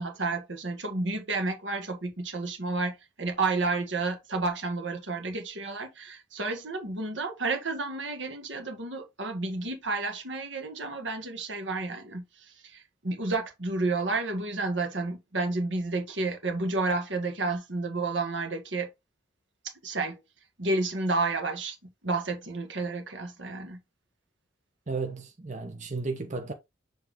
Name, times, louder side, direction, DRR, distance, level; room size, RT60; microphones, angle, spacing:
voice 1, 0.0-18.9 19.8-20.2 20.6-21.8 22.0-23.8, right 3 dB, 85° right, 1.7 m, -31 dB
voice 2, 24.9-26.5, right 3 dB, 40° right, 1.0 m, -33 dB
7.2 x 3.5 x 3.6 m
head